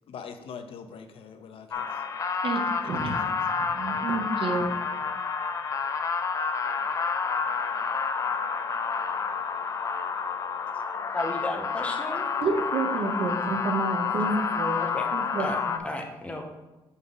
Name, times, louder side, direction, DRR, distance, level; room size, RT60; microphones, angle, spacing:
voice 1, 0.0-2.0 2.8-3.3, left 6 dB, 75° left, 8 dB, 0.6 m, -43 dB
sound 1, 1.7-15.8, left 5 dB, 35° left, 0.4 m, -29 dB
voice 2, 2.4-3.2 3.7-4.8 12.4-15.8, right 3 dB, 65° right, 4 dB, 0.9 m, -30 dB
voice 3, 11.1-12.3 14.8-15.0 15.4-15.6 15.8-16.4, left 2 dB, 15° left, 2 dB, 0.8 m, -33 dB
6.1 x 5.5 x 3.9 m, 1.1 s
wide cardioid pair, 170°, 10 cm